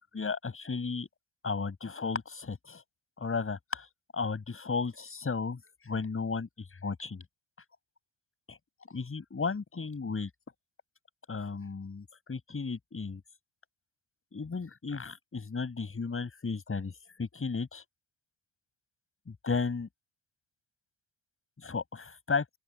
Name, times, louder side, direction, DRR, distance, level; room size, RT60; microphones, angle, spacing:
voice 1, 0.1-1.1 1.4-2.8 3.2-7.2 8.5-8.6 8.9-10.3 11.3-13.2 14.3-17.8 19.3-19.9 21.6-22.4, left 4 dB, 30° left, 7.9 m, -34 dB
open air
supercardioid pair, 65°, 41 cm